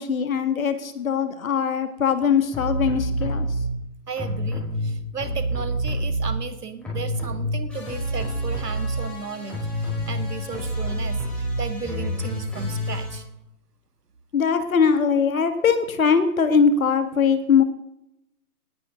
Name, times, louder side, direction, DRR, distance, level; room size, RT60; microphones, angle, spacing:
voice 1, 0.0-3.5 14.3-17.6, left 6 dB, 60° left, 9 dB, 2.1 m, -21 dB
sound 1, 2.5-3.7 4.1-6.6 6.8-13.2, right 1 dB, ahead, 4.9 m, -27 dB
voice 2, 4.1-13.3, right 5 dB, 85° right, 10 dB, 2.1 m, -35 dB
18.5 x 10.0 x 3.9 m, 0.84 s
hypercardioid pair, 150°, 46 cm